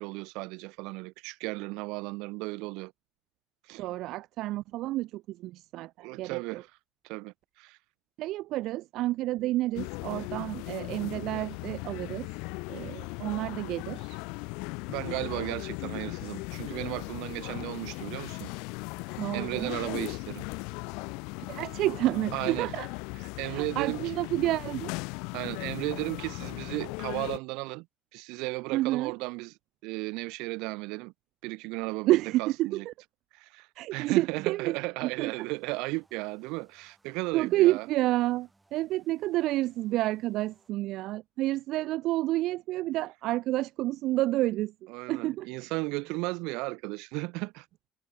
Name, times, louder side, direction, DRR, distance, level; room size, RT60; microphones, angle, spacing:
voice 1, 0.0-2.9 3.7-3.8 6.0-6.7 7.0-7.8 14.9-18.5 19.3-20.5 22.3-22.7 23.4-24.0 25.3-27.9 28.1-29.5 29.8-31.1 31.4-32.9 33.3-37.9 44.9-47.7, right 25 dB, 70° right, 0.8 m, -35 dB
voice 2, 3.8-6.6 8.2-12.3 12.7-14.2 19.2-19.7 21.5-22.9 23.4-24.9 28.7-29.1 32.1-32.9 33.8-34.7 35.0-35.5 37.3-44.7 45.1-45.5, right 16 dB, 50° right, 0.4 m, -29 dB
sound 1, 9.7-27.4, left 30 dB, 85° left, 1.1 m, -38 dB
sound 2, 35.2-40.7, right 2 dB, 10° right, 7.9 m, -68 dB
cardioid pair, 180°, 0 cm